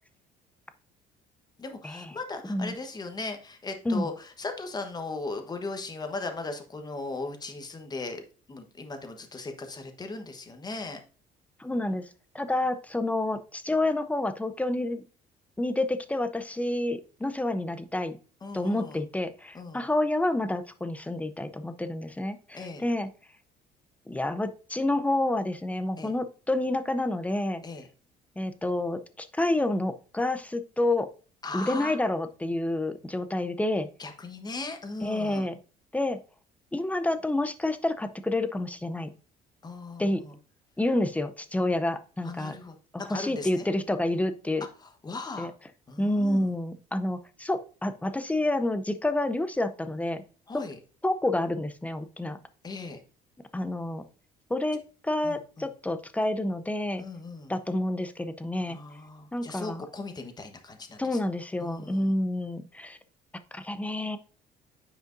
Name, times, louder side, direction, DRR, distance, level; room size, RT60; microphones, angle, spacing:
voice 1, 1.6-8.2 8.5-11.0 18.4-19.0 19.5-19.9 22.5-22.8 26.0-26.1 27.6-27.9 31.4-32.0 34.0-35.5 39.6-40.4 42.2-42.8 43.1-43.7 44.8-45.5 45.9-46.5 50.5-50.8 52.6-53.0 55.2-55.7 57.0-57.5 58.7-61.2 61.6-62.1, left 3 dB, 25° left, 6 dB, 1.2 m, -38 dB
voice 2, 11.6-12.1 12.3-15.0 15.6-18.2 18.5-23.1 24.1-27.6 28.4-31.1 31.5-33.9 35.0-35.6 35.9-36.2 36.7-39.1 40.0-40.2 40.8-42.6 42.9-44.7 45.4-45.5 46.0-50.2 50.5-50.6 51.0-52.4 53.5-54.0 54.5-57.0 57.5-58.8 59.3-59.8 61.0-63.0 63.5-64.2, left 1 dB, 10° left, 10 dB, 0.6 m, -29 dB
9.2 x 5.0 x 2.6 m, 0.37 s
cardioid pair, 110°, 17 cm